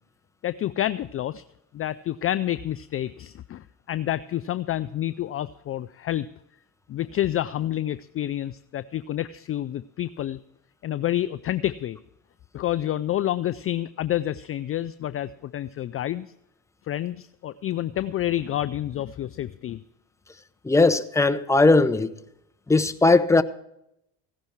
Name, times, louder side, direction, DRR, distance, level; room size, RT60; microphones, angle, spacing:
voice 1, 0.4-1.4 1.7-6.3 6.9-10.4 10.8-12.0 12.5-16.3 16.9-19.8, left 12 dB, 35° left, 0.4 m, -28 dB
voice 2, 20.6-22.1 22.7-23.4, left 3 dB, 5° left, 0.8 m, -18 dB
16.0 x 11.5 x 4.6 m
supercardioid pair, 90°, 43 cm